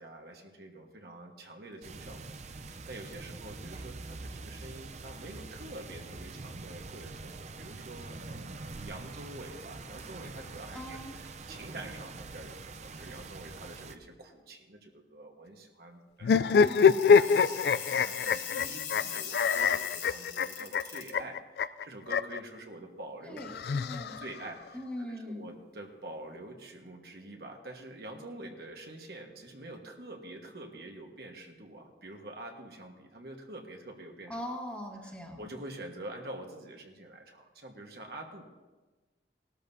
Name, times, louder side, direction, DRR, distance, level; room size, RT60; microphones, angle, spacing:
voice 1, 0.0-23.4 24.1-34.3 35.0-38.4, right 1 dB, 60° right, 2 dB, 1.4 m, -46 dB
sound 1, 1.8-14.0, right 3 dB, 40° right, 0.6 m, -44 dB
voice 2, 10.7-11.1 16.3-17.2 23.3-24.2 24.7-25.5 34.3-35.4, left 1 dB, 10° left, -1 dB, 1.6 m, -41 dB
sound 2, 16.2-22.4 23.4-24.5, left 6 dB, 60° left, 0.3 m, -25 dB
sound 3, 16.5-21.1, left 8 dB, 90° left, 4.0 m, -40 dB
19.0 x 13.0 x 2.8 m, 1.2 s
head